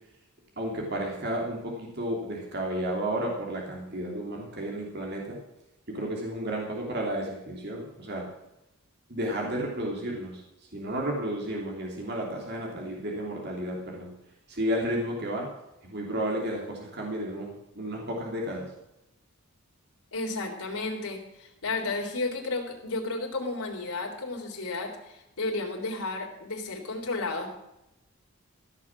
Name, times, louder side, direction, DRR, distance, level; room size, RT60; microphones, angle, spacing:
voice 1, 0.6-5.4 5.9-8.3 9.1-10.4 10.7-14.1 14.5-15.5 15.8-18.7, right 1 dB, 50° right, -1 dB, 2.9 m, -32 dB
voice 2, 20.1-27.5, left 3 dB, 85° left, 0 dB, 3.5 m, -33 dB
15.0 x 7.3 x 7.3 m, 0.88 s
head